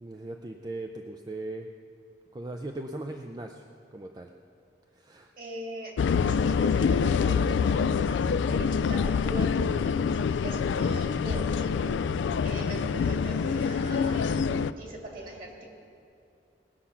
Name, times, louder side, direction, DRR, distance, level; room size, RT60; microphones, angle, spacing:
voice 1, 0.0-1.7 2.3-3.6 3.9-4.3 4.9-5.3, right 2 dB, 20° right, 4 dB, 0.4 m, -38 dB
voice 2, 5.4-5.9 6.2-15.6, right 1 dB, 50° right, -1 dB, 2.5 m, -40 dB
sound 1, 6.0-14.7, left 6 dB, 85° left, 0.3 m, -26 dB
19.0 x 7.1 x 5.7 m, 2.6 s
head